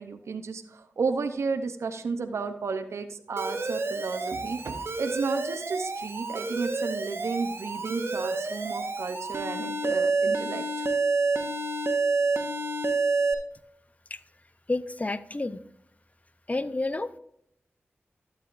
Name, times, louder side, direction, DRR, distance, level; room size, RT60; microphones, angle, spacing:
voice 1, 0.0-10.9, right 4 dB, 85° right, 8 dB, 0.7 m, -32 dB
Alarm, 3.4-13.3, right 3 dB, 65° right, 1.2 m, -29 dB
voice 2, 14.7-15.6 16.5-17.2, left 2 dB, 30° left, 14 dB, 0.6 m, -30 dB
12.5 x 8.7 x 2.5 m, 0.73 s
cardioid pair, 40°, 5 cm